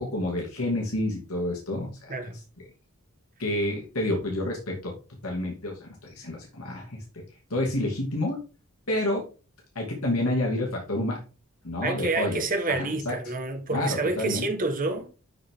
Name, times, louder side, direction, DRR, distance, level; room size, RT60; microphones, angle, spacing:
voice 1, 0.0-2.1 3.4-4.9 5.2-7.0 7.5-8.4 8.9-9.3 9.7-11.2 11.6-12.4 12.7-13.2 13.7-14.4, left 1 dB, 75° left, 2.8 m, -29 dB
voice 2, 11.8-15.1, right 2 dB, 40° right, 1.7 m, -28 dB
12.0 x 4.9 x 3.9 m
head